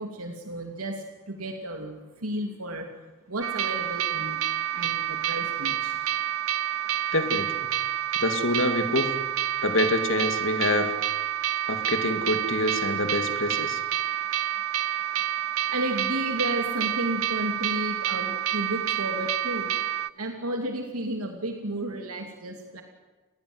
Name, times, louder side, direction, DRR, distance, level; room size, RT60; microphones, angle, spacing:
voice 1, 0.0-2.9 3.3-4.4 4.7-6.0 15.7-19.8 20.1-22.8, right 1 dB, 90° right, 4 dB, 2.8 m, -32 dB
sound 1, 3.4-20.1, right 11 dB, 70° right, 0.7 m, -28 dB
voice 2, 7.1-7.5 8.2-9.1 9.6-10.9 11.7-13.8, left 2 dB, 60° left, 7 dB, 2.5 m, -26 dB
30.0 x 20.0 x 8.0 m, 1.3 s
head